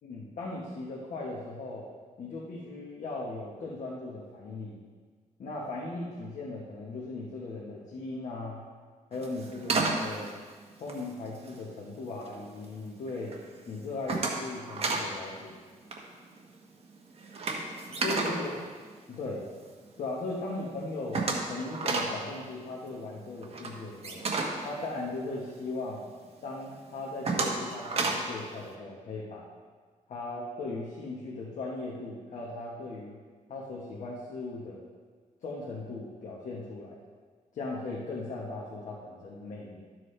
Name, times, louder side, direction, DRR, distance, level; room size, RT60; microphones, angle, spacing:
voice 1, 0.0-1.9 2.2-4.8 5.4-8.6 9.1-10.4 10.8-13.3 13.7-15.5 18.0-18.5 19.1-19.4 20.0-24.2 24.6-26.0 26.4-29.5 30.1-33.2 33.5-34.8 35.4-37.0 37.5-39.8, left 2 dB, 65° left, -4 dB, 1.4 m, -38 dB
sound 1, 9.1-11.7 12.1-12.6 13.0-13.4 13.7-15.1 15.4-15.6 15.8-19.6 20.0-20.1 20.4-20.5 20.6-25.7 26.1-26.2 26.7-28.4, right 3 dB, 50° right, 1.3 m, -32 dB
12.5 x 7.6 x 3.3 m, 1.6 s
wide cardioid pair, 155°, 13 cm